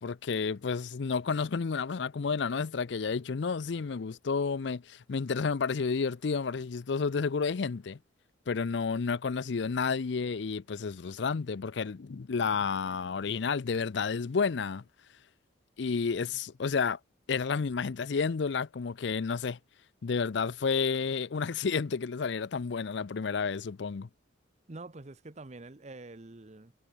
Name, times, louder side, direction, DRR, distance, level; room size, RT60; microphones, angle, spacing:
voice 1, 0.0-8.0 8.5-14.8 15.8-17.0 17.3-19.6 20.0-24.1, left 5 dB, 65° left, 0.5 m, -31 dB
voice 2, 24.7-26.7, right 2 dB, 35° right, 0.8 m, -46 dB
head